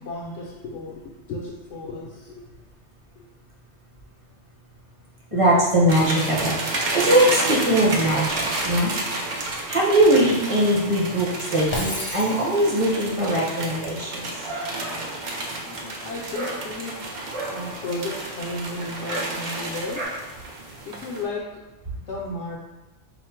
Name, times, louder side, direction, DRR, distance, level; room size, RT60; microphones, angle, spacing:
voice 1, 0.0-2.5 3.2-3.3 5.3-5.4 15.6-17.1 17.5-20.1 20.9-21.6 21.9-22.6, left 2 dB, 70° left, -3 dB, 0.9 m, -34 dB
voice 2, 5.3-9.3 9.7-14.3, right 1 dB, 30° right, -6 dB, 0.8 m, -21 dB
sound 1, 5.9-21.2, right 2 dB, 60° right, 0.5 m, -31 dB
Shatter, 11.7-12.9, left 1 dB, 30° left, 0.6 m, -31 dB
Dog, 14.0-20.0, right 1 dB, 75° right, 1.5 m, -37 dB
4.2 x 2.1 x 4.4 m, 1.1 s
omnidirectional pair, 1.3 m